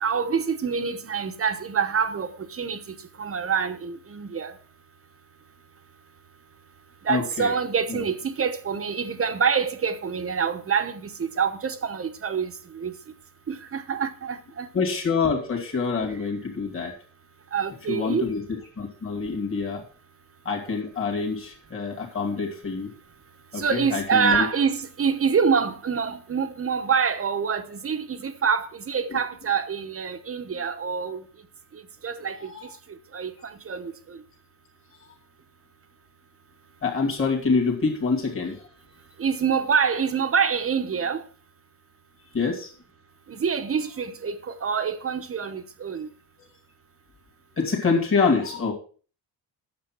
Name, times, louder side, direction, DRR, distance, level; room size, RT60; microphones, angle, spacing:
voice 1, 0.0-4.5 7.0-12.9 13.5-14.7 17.5-18.3 23.5-31.2 31.7-32.4 33.1-34.2 39.2-41.2 43.3-46.1, right 6 dB, 35° right, 1.0 m, -26 dB
voice 2, 7.1-7.5 7.9-8.0 14.7-16.9 17.9-19.8 20.4-22.9 23.5-24.5 29.1-29.2 32.5-32.6 36.8-38.6 42.3-42.7 46.4-46.5 47.6-48.7, left 4 dB, 30° left, 2.5 m, -26 dB
9.5 x 7.0 x 6.0 m
cardioid pair, 140°, 42 cm